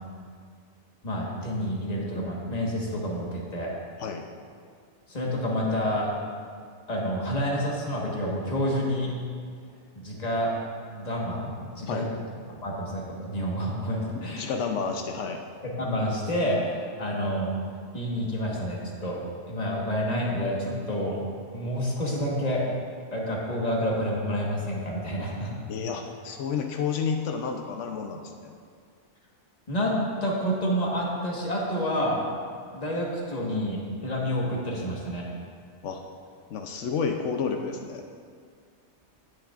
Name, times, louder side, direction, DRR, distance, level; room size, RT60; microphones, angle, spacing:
voice 1, 1.0-3.7 5.1-6.1 6.9-9.1 9.9-10.5 10.9-12.1 12.6-14.5 15.6-17.5 17.9-21.2 21.5-22.6 23.1-25.6 29.7-29.9 30.2-32.2 32.7-35.3, equal, 35° left, -3 dB, 1.5 m, -29 dB
voice 2, 14.1-15.4 25.7-28.5 35.8-36.0 36.5-38.0, left 5 dB, 90° left, 4 dB, 1.0 m, -30 dB
17.5 x 6.5 x 2.5 m, 2.1 s
omnidirectional pair, 1.2 m